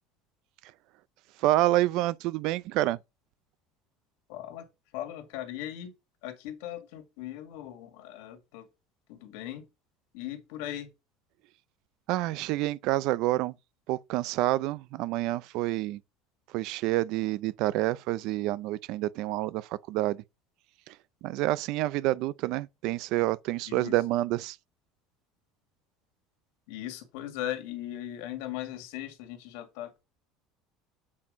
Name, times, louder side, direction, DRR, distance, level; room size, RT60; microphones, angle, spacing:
voice 1, 1.4-3.0 12.1-13.5 13.9-16.0 16.5-20.2 20.9-21.0 21.2-24.6, right 16 dB, 50° right, 0.4 m, -28 dB
voice 2, 4.3-5.9 6.2-8.7 9.1-9.7 10.1-10.9 23.7-24.0 26.7-30.0, left 12 dB, 80° left, 2.1 m, -39 dB
8.4 x 4.5 x 5.1 m
cardioid pair, 175°, 0 cm